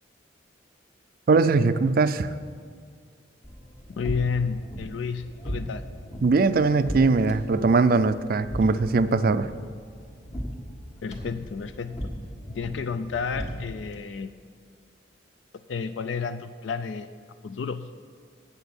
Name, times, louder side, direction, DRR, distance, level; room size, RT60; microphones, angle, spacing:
voice 1, 1.3-2.3 6.2-9.5, right 3 dB, 50° right, 13 dB, 0.4 m, -21 dB
sound 1, 3.4-14.0, equal, 40° left, 1.5 m, -37 dB
voice 2, 3.9-5.8 11.0-12.0 12.5-14.3 15.7-17.1 17.4-17.9, left 5 dB, 75° left, 11 dB, 0.4 m, -31 dB
8.2 x 8.1 x 6.9 m, 2.1 s
head